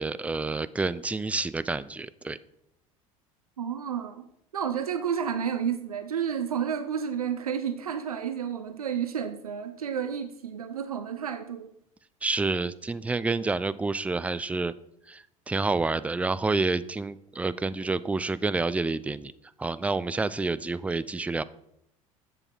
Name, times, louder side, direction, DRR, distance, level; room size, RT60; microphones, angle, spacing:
voice 1, 0.0-2.4 12.2-14.7 15.1-19.3 19.6-21.4, right 3 dB, 5° right, 0.3 m, -28 dB
voice 2, 3.6-4.3 4.5-11.7, right 8 dB, 85° right, 0.5 m, -31 dB
7.8 x 7.1 x 4.3 m
figure-of-eight pair, 70°, 18 cm